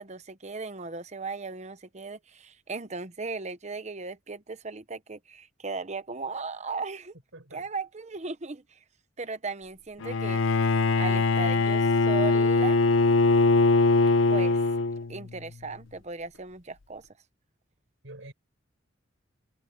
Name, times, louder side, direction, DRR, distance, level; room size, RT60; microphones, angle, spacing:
voice 1, 0.0-7.1 7.5-8.8 9.2-10.4 11.0-12.8 14.3-14.6 15.1-17.1, right 4 dB, 35° right, 0.9 m, -37 dB
voice 2, 7.3-7.7 18.0-18.3, right 2 dB, 80° right, 4.7 m, -45 dB
Bowed string instrument, 10.0-15.3, left 3 dB, 80° left, 0.7 m, -22 dB
head